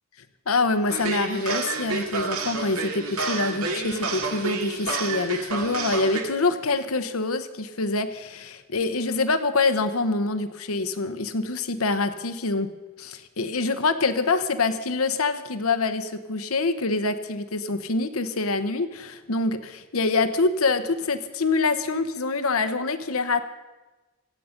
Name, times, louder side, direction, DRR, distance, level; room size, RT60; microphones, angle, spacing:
voice 1, 0.5-12.7 13.0-23.4, left 3 dB, 80° left, 10 dB, 1.0 m, -25 dB
sound 1, 0.9-6.2, right 4 dB, 85° right, 2.1 m, -29 dB
25.5 x 8.6 x 5.2 m, 1.2 s
head